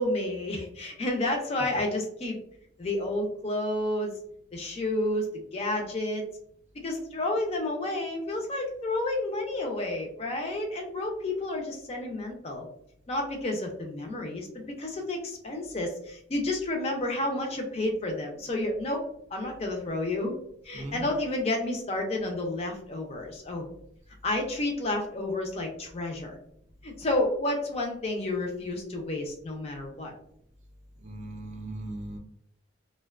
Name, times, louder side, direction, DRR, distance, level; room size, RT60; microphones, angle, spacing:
voice 1, 0.0-2.4 2.8-4.2 4.5-6.3 6.8-12.7 13.1-19.0 19.3-20.4 20.6-23.7 24.2-26.4 26.8-30.1, left 1 dB, 30° left, 2 dB, 0.4 m, -30 dB
voice 2, 20.7-21.1 31.0-32.2, right 1 dB, 35° right, 3 dB, 0.4 m, -38 dB
2.5 x 2.1 x 2.3 m, 0.71 s
head